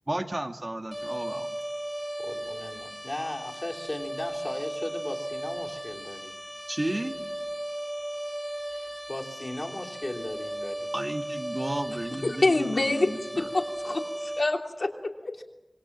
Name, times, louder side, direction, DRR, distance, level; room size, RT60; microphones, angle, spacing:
voice 1, 0.1-1.5 6.7-7.2 10.9-13.5, right 1 dB, 35° right, 5 dB, 2.0 m, -33 dB
sound 1, 0.9-14.4, right 1 dB, ahead, 3.2 m, -36 dB
voice 2, 2.2-6.3 8.8-10.9 15.4-15.5, left 1 dB, 30° left, 2 dB, 3.4 m, -37 dB
voice 3, 12.2-15.4, left 2 dB, 60° left, 2 dB, 2.9 m, -27 dB
26.5 x 22.0 x 7.4 m, 1.0 s
wide cardioid pair, 65°, 0 cm